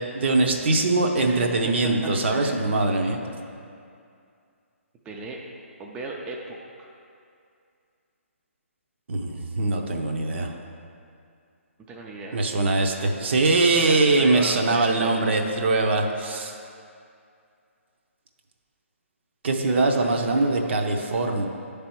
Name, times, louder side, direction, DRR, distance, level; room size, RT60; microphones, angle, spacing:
voice 1, 0.0-3.2 9.1-10.5 12.3-16.5 19.4-21.5, right 2 dB, 55° right, 3 dB, 0.7 m, -22 dB
voice 2, 1.2-1.5 1.8-2.6 5.0-5.4 5.8-6.9 11.9-12.4 13.8-15.2 19.6-20.5 20.8-20.9, right 2 dB, 15° right, -1 dB, 0.4 m, -37 dB
9.5 x 3.4 x 4.4 m, 2.4 s
figure-of-eight pair, 140°, 7 cm